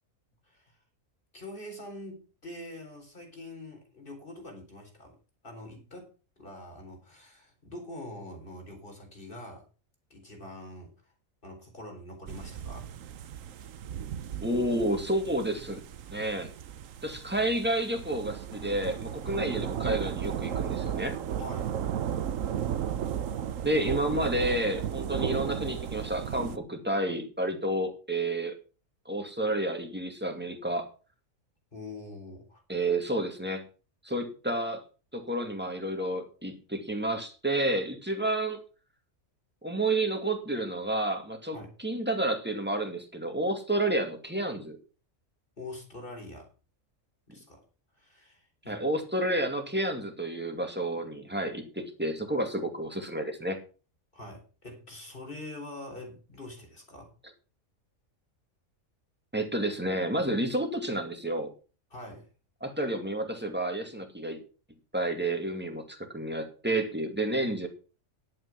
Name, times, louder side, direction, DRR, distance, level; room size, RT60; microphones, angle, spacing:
voice 1, 0.4-0.8 1.3-5.2 5.4-6.1 6.4-9.6 10.1-10.9 11.4-12.9 21.4-21.8 31.7-32.6 41.5-41.7 45.6-46.5 47.3-47.6 48.0-48.8 54.1-57.1 61.9-62.3, left 1 dB, 40° left, 3 dB, 4.2 m, -44 dB
sound 1, 12.3-26.6, right 9 dB, 70° right, 1.2 m, -35 dB
voice 2, 14.4-15.8 16.1-16.5 17.0-21.2 23.6-28.5 29.1-30.9 32.7-33.6 34.0-34.8 35.1-38.6 39.6-44.8 48.7-53.6 59.3-61.5 62.6-64.4 64.9-67.7, right 1 dB, 5° right, 4 dB, 2.2 m, -30 dB
11.0 x 8.7 x 5.9 m, 0.35 s
omnidirectional pair, 1.4 m